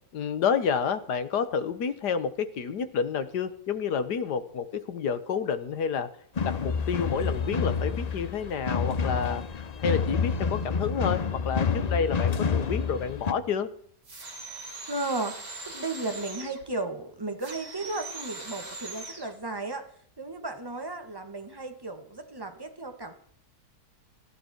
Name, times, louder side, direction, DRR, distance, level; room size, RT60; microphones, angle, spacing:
voice 1, 0.1-6.1 6.4-9.4 9.8-13.7, left 6 dB, 75° left, 13 dB, 1.7 m, -29 dB
sound 1, 6.4-13.3, left 6 dB, 45° left, 0.5 m, -28 dB
sound 2, 14.0-16.6 17.4-19.3, right 3 dB, 75° right, 4.3 m, -41 dB
voice 2, 14.9-19.8 20.2-23.1, right 2 dB, 15° right, 6 dB, 1.8 m, -34 dB
18.5 x 14.0 x 4.5 m, 0.63 s
omnidirectional pair, 1.8 m